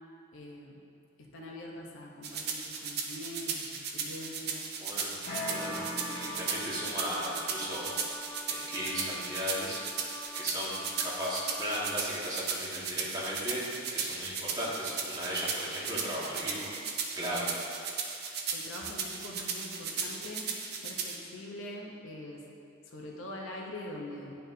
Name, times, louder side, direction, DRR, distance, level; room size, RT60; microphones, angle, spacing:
voice 1, 0.3-0.8 1.3-4.7 18.5-20.5 20.8-22.4 22.9-24.4, left 1 dB, 70° left, -1 dB, 0.8 m, -43 dB
sound 1, 2.2-21.2, right 5 dB, 50° right, 0.6 m, -36 dB
voice 2, 4.8-5.1 5.4-8.0 8.5-13.6 13.9-16.7 17.1-17.5, equal, 20° right, -8 dB, 1.4 m, -36 dB
sound 2, 5.3-7.2, equal, 45° left, 1.3 m, -39 dB
Wind instrument woodwind instrument, 5.6-12.0, left 2 dB, 10° left, 0.5 m, -45 dB
10.5 x 4.4 x 2.7 m, 2.5 s
head